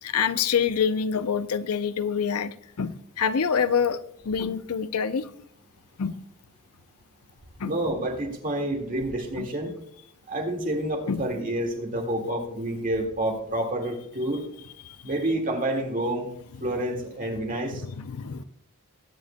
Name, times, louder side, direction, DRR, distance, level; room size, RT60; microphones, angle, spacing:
voice 1, 0.0-4.0 4.3-5.3 6.0-6.2 7.6-7.7 9.4-9.5 11.1-11.2 17.8-18.4, left 6 dB, 80° left, 12 dB, 0.6 m, -26 dB
voice 2, 7.6-9.7 10.3-14.4 15.0-16.3 16.6-17.8, right 1 dB, 40° right, 3 dB, 1.9 m, -28 dB
21.0 x 9.5 x 2.2 m, 0.70 s
head